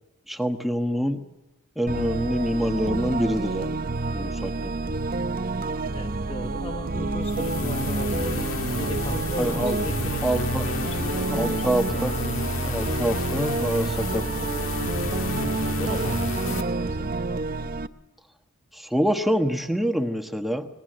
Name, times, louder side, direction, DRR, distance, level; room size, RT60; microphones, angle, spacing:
voice 1, 0.3-1.2 1.8-3.8 4.1-4.7 9.4-9.8 10.2-10.6 11.3-12.1 12.6-14.2 18.7-20.7, equal, ahead, 5 dB, 1.3 m, -26 dB
sound 1, 1.9-17.9, right 3 dB, 40° right, 0.7 m, -29 dB
voice 2, 5.9-12.2 15.8-17.1, left 1 dB, 25° left, 4 dB, 1.3 m, -37 dB
sound 2, 7.2-16.6, left 2 dB, 80° left, 1.8 m, -31 dB
26.0 x 20.0 x 7.7 m, 1.1 s
head